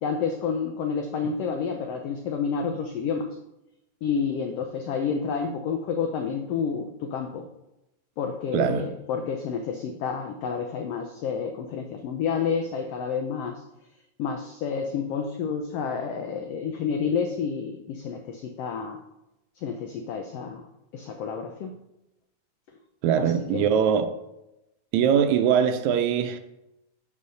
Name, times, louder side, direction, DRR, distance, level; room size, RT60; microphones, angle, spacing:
voice 1, 0.0-3.3 4.0-7.4 8.2-13.6 14.2-19.0 19.6-20.6 20.9-21.7 23.5-23.7, left 6 dB, 90° left, 1.3 m, -29 dB
voice 2, 8.5-8.9 23.0-24.1 24.9-26.4, right 8 dB, 80° right, 1.9 m, -22 dB
5.6 x 5.4 x 6.3 m
omnidirectional pair, 3.5 m